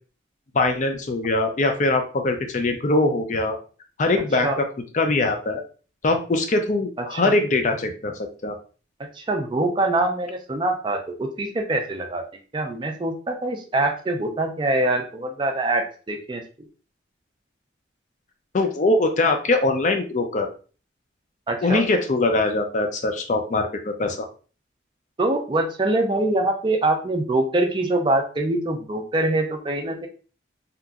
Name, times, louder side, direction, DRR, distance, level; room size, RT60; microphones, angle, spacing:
voice 1, 0.5-3.6 4.0-4.5 4.9-5.6 6.0-8.5 18.5-20.5 21.6-24.3, left 2 dB, 40° left, 5 dB, 0.4 m, -22 dB
voice 2, 4.2-4.6 7.0-7.3 9.1-12.2 12.5-16.4 21.5-21.8 25.2-30.1, right 2 dB, 25° right, 3 dB, 0.4 m, -24 dB
2.8 x 2.5 x 2.3 m, 0.37 s
head